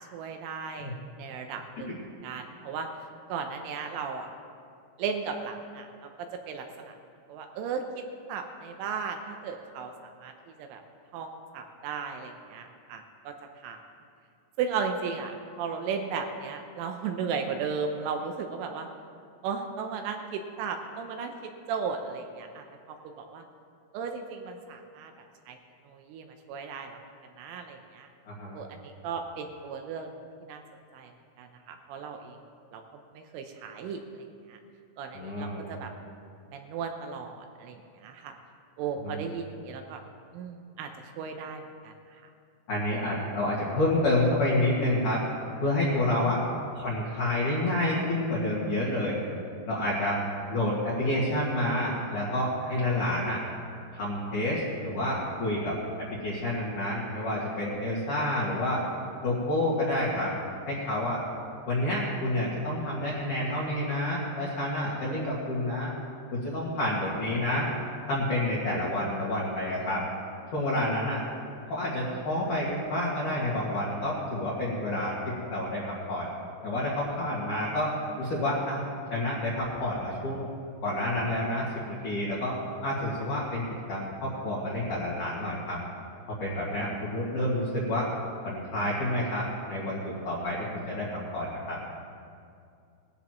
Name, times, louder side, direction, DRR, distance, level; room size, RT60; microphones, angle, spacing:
voice 1, 0.1-1.9 2.2-2.9 3.3-4.3 5.0-6.1 6.5-6.9 7.3-8.0 8.3-10.3 10.6-10.8 11.1-13.3 13.6-13.8 14.6-18.9 19.4-23.4 23.9-25.1 25.5-25.6 25.9-27.0 27.4-28.1 28.5-30.1 30.4-30.6 30.9-31.1 31.4-32.4 32.7-32.8 33.1-34.6 35.0-35.9 36.5-38.3 38.8-40.0 40.3-40.9 41.2-42.2, right 6 dB, 80° right, 5 dB, 3.1 m, -36 dB
voice 2, 28.3-28.6 35.1-35.7 39.0-39.2 42.7-45.2 45.6-46.4 46.7-49.2 49.6-50.2 50.5-53.4 53.9-58.8 59.2-60.3 60.7-61.2 61.7-65.9 66.3-67.7 68.1-70.0 70.5-71.2 71.7-76.3 76.6-78.8 79.1-80.5 80.8-82.6 82.8-85.8 86.3-88.1 88.4-91.8, left 1 dB, 55° left, -7 dB, 2.6 m, -29 dB
19.5 x 13.5 x 3.1 m, 2.4 s
omnidirectional pair, 6.0 m